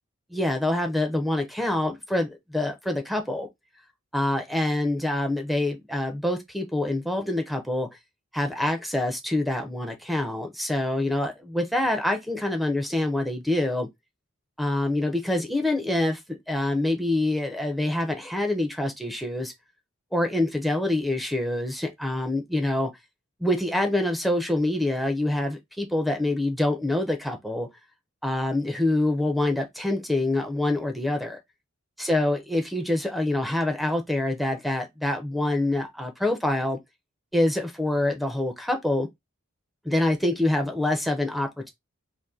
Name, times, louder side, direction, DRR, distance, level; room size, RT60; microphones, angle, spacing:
voice 1, 0.3-3.5 4.1-7.9 8.3-13.9 14.6-19.5 20.1-22.9 23.4-27.7 28.2-31.4 32.0-36.8 37.3-39.1 39.8-41.7, left 1 dB, ahead, 0.4 m, -26 dB
2.6 x 2.5 x 3.6 m
head